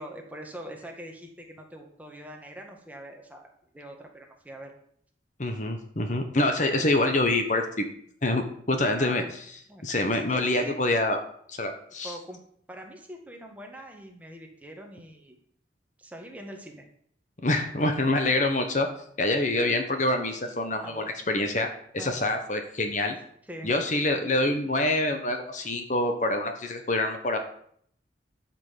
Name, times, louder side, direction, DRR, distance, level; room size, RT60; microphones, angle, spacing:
voice 1, 0.0-4.7 9.0-9.3 9.7-10.8 12.0-12.4 12.7-15.4 16.0-16.8 18.3-18.4 20.4-21.1 22.0-22.2 23.4-23.7, right 1 dB, 10° right, 2 dB, 1.7 m, -43 dB
voice 2, 5.4-7.9 8.2-9.2 9.8-11.2 11.5-12.1 17.4-18.9 19.2-21.7 21.9-23.1 23.6-27.4, left 2 dB, 45° left, 6 dB, 1.3 m, -26 dB
12.5 x 6.0 x 7.5 m, 0.64 s
head